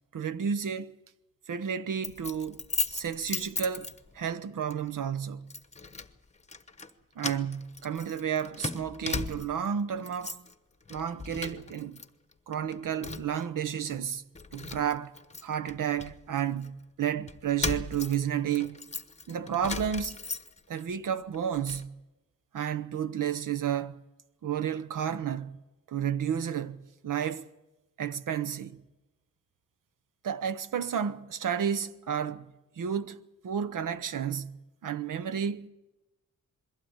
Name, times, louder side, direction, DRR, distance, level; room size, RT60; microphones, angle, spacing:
voice 1, 0.1-0.9 1.5-2.6 2.9-3.9 4.1-5.5 7.2-10.4 10.9-12.0 12.5-14.2 14.5-15.1 15.4-18.8 19.3-20.2 20.7-22.0 22.5-23.9 24.4-25.6 25.9-27.5 28.0-28.8 30.2-32.5 32.8-35.7, right 8 dB, 70° right, 1.0 m, -31 dB
Keys jangling, 2.0-4.3 4.7-4.9 5.5-6.1 6.4-6.9 7.2-9.7 10.0-10.5 10.9-12.1 12.3-13.4 13.9-14.0 14.4-16.7 17.3-20.8 21.2-21.9, left 4 dB, 20° left, 1.0 m, -37 dB
22.0 x 15.5 x 8.9 m
wide cardioid pair, 110°, 33 cm